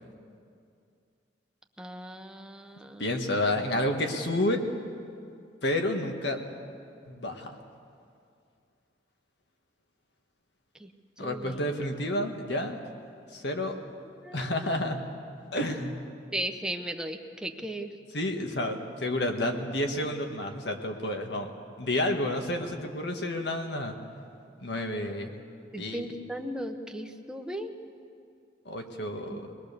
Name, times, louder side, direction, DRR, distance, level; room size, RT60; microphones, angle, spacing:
voice 1, 1.8-3.0 10.8-10.9 11.2-11.6 14.2-14.5 16.3-17.9 25.7-27.7 29.2-29.4, right 1 dB, 5° right, 4 dB, 1.1 m, -36 dB
voice 2, 3.0-4.7 5.6-6.4 7.0-7.5 11.2-12.8 13.3-13.8 14.3-15.0 15.5-16.1 18.1-21.5 21.8-23.9 24.6-25.3 25.7-26.0 28.6-29.5, left 1 dB, 65° left, 4 dB, 1.8 m, -30 dB
23.5 x 20.5 x 6.9 m, 2.4 s
head